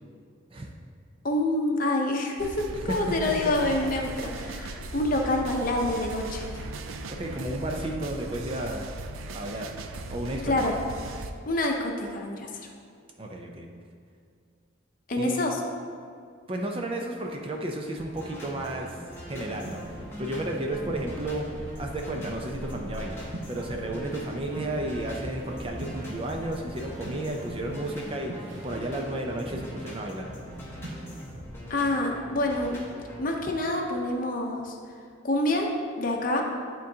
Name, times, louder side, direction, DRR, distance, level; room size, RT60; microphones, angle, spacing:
voice 1, 1.2-6.5 10.4-10.7 11.5-12.7 15.1-15.6 31.7-32.8 33.2-34.8 35.2-35.7 36.0-36.4, left 1 dB, 45° left, 1 dB, 0.7 m, -27 dB
sound 1, 2.4-11.3, right 2 dB, 85° right, 0.4 m, -38 dB
voice 2, 7.1-8.9 9.3-9.7 10.1-10.6 13.2-13.7 15.2-15.4 16.5-21.5 21.8-30.3, right 1 dB, 25° right, 1 dB, 0.4 m, -33 dB
sound 2, 18.0-33.2, equal, 10° left, 1.0 m, -42 dB
sound 3, 19.5-31.1, right 1 dB, 65° right, 0.9 m, -42 dB
10.5 x 3.8 x 2.8 m, 2.2 s
head